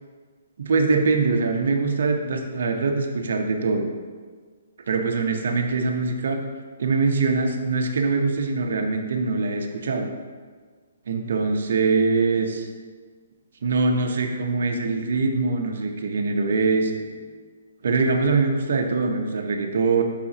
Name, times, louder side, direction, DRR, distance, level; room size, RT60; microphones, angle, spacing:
voice 1, 0.6-3.9 4.9-6.4 6.8-10.1 11.1-12.7 13.6-17.2 17.8-20.0, right 4 dB, 60° right, 3 dB, 0.7 m, -23 dB
6.9 x 4.9 x 2.9 m, 1.5 s
hypercardioid pair, 170°, 0 cm